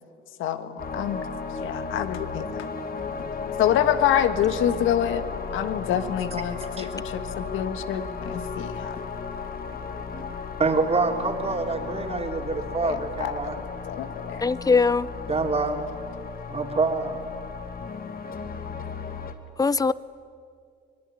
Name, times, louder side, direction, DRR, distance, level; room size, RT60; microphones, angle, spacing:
voice 1, 0.4-2.7 3.0-3.1 3.6-5.3 5.5-9.0 12.8-14.5, left 10 dB, 90° left, 11 dB, 1.5 m, -27 dB
sound 1, 0.8-19.3, left 5 dB, 50° left, 2.0 m, -35 dB
voice 2, 9.8-10.2 10.6-13.5 15.3-15.8 16.5-17.2, right 3 dB, 30° right, 4 dB, 3.2 m, -26 dB
voice 3, 14.4-15.1 19.6-19.9, left 4 dB, 20° left, 19 dB, 0.6 m, -20 dB
24.5 x 20.0 x 9.9 m, 2.4 s
cardioid pair, 90°, 20 cm